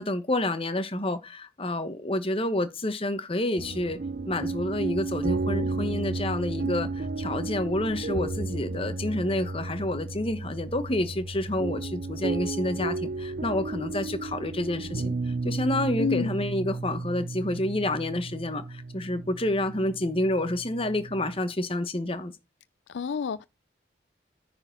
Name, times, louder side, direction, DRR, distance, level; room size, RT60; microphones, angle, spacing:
voice 1, 0.0-4.0 4.2-22.3, left 1 dB, 30° left, 1.1 m, -29 dB
sound 1, 3.6-21.4, right 3 dB, 50° right, 0.5 m, -33 dB
voice 2, 16.0-16.4 22.9-23.5, left 6 dB, 75° left, 0.4 m, -29 dB
9.7 x 4.3 x 5.9 m
head